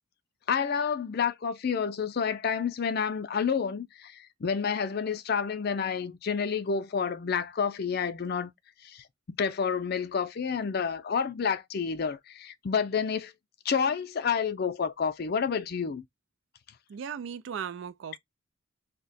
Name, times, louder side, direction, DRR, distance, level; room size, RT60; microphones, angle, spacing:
voice 1, 0.5-8.5 8.8-13.3 13.6-16.0, left 6 dB, 50° left, 0.4 m, -29 dB
voice 2, 16.9-18.2, right 7 dB, 65° right, 0.3 m, -37 dB
2.8 x 2.2 x 4.0 m
head